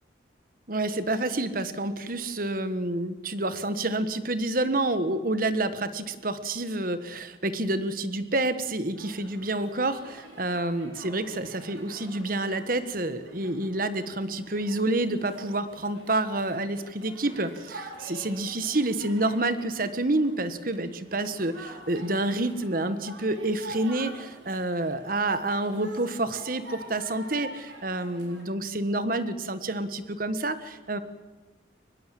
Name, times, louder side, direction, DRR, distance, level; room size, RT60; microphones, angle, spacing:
voice 1, 0.7-31.0, right 2 dB, 50° right, 12 dB, 1.4 m, -28 dB
sound 1, 9.0-28.4, right 1 dB, 75° right, 4.6 m, -47 dB
24.0 x 20.0 x 7.7 m, 1.2 s
head